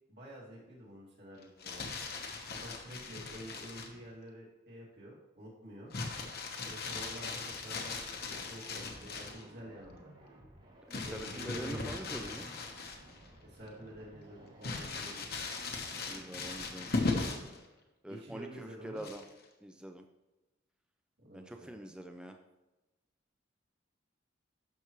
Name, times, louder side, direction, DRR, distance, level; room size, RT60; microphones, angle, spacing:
voice 1, 0.1-1.9 2.5-5.9 6.6-10.1 10.9-12.0 13.4-15.2 18.1-19.0 21.2-21.7, equal, 60° right, -4 dB, 2.4 m, -49 dB
Crumpling crinkling, 1.4-4.0 5.9-9.5 10.9-13.3 13.7-13.8 14.6-17.6 19.0-19.4, left 3 dB, 55° left, 1.1 m, -38 dB
sound 1, 7.1-17.6, right 1 dB, 45° right, 2.3 m, -57 dB
voice 2, 10.9-12.5 15.9-17.1 18.0-19.2 19.6-20.1 21.3-22.4, right 1 dB, 5° right, 4 dB, 0.4 m, -45 dB
12.0 x 6.0 x 3.1 m, 1.1 s
head